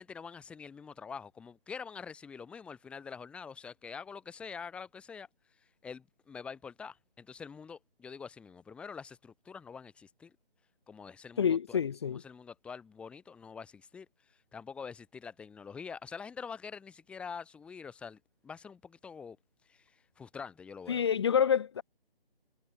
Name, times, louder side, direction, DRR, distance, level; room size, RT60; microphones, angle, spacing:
voice 1, 0.0-5.3 5.8-10.3 10.9-14.1 14.5-19.4 19.7-21.0, left 6 dB, 5° left, 2.6 m, -45 dB
voice 2, 11.4-12.2 20.9-21.8, left 8 dB, 25° left, 1.5 m, -27 dB
figure-of-eight pair, 160°, 31 cm